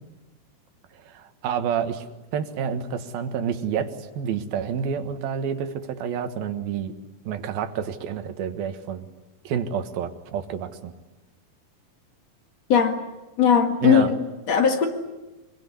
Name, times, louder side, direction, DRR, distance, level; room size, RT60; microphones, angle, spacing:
voice 1, 1.1-2.1 2.3-6.9 7.3-9.1 9.5-10.9 13.8-14.1, right 7 dB, 80° right, 8 dB, 3.4 m, -28 dB
voice 2, 12.7-13.0 13.4-14.9, left 7 dB, 50° left, 5 dB, 2.8 m, -19 dB
25.0 x 22.5 x 9.9 m, 1.1 s
omnidirectional pair, 4.2 m